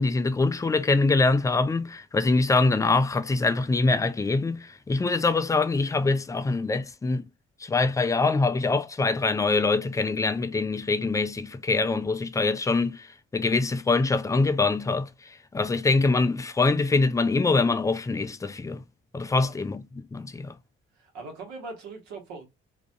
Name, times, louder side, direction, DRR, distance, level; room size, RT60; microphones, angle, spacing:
voice 1, 0.0-7.3 7.6-13.1 13.3-15.1 15.5-18.8 19.1-19.8 20.1-20.6, left 3 dB, 10° left, 0.3 m, -24 dB
voice 2, 20.9-22.4, right 3 dB, 80° right, 1.0 m, -41 dB
2.4 x 2.2 x 2.5 m
supercardioid pair, 60°, 29 cm